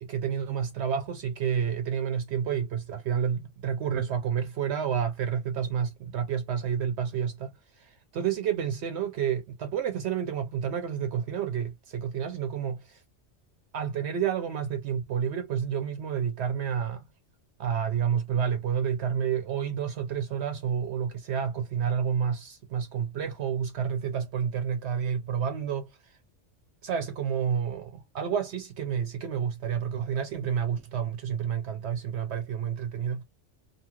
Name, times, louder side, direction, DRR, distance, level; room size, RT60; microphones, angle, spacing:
voice 1, 0.0-7.5 7.8-13.0 13.7-17.0 17.6-26.1 26.8-33.2, right 8 dB, 70° right, 0.8 m, -30 dB
2.7 x 2.4 x 2.8 m
omnidirectional pair, 1.2 m